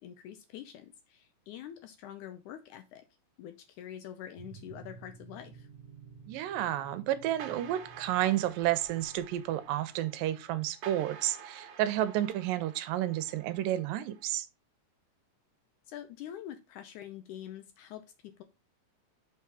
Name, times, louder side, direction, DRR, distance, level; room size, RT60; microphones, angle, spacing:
voice 1, 0.0-3.1 3.4-5.7 15.9-18.4, left 10 dB, 75° left, 1.9 m, -45 dB
sound 1, 4.4-10.3, right 5 dB, 30° left, 1.7 m, -53 dB
voice 2, 6.3-14.5, right 13 dB, 80° right, 2.3 m, -31 dB
sound 2, 7.4-14.3, right 7 dB, 65° right, 2.0 m, -50 dB
5.8 x 4.6 x 4.7 m
omnidirectional pair, 4.0 m